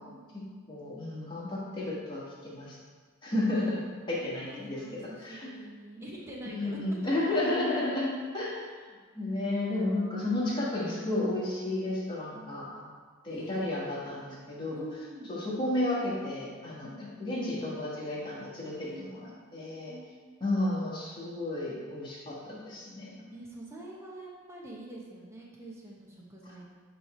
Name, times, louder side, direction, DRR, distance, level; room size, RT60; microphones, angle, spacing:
voice 1, 0.1-0.5 3.5-3.8 4.2-7.2 8.5-8.6 13.3-14.1 14.7-15.4 18.8-19.5 19.9-20.4 23.3-26.7, right 1 dB, 15° right, -4 dB, 1.1 m, -46 dB
voice 2, 0.7-2.8 3.2-5.5 6.5-8.6 9.2-12.9 13.2-14.8 15.3-19.9 20.4-23.2, left 1 dB, 20° left, -8 dB, 1.9 m, -32 dB
8.6 x 3.3 x 4.5 m, 1.5 s
head